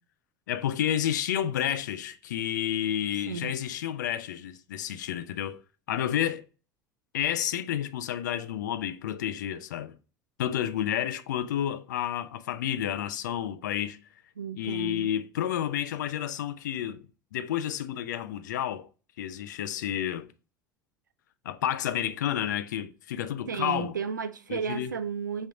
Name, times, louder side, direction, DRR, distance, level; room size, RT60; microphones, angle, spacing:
voice 1, 0.5-5.6 5.9-6.5 7.1-10.0 10.4-14.0 14.5-17.1 17.3-18.9 19.2-20.3 21.4-24.0 24.5-25.0, left 10 dB, 75° left, 0.4 m, -30 dB
voice 2, 14.4-15.2 23.5-25.5, right 6 dB, 90° right, 0.4 m, -33 dB
5.3 x 3.0 x 2.3 m
hypercardioid pair, 70°, 10 cm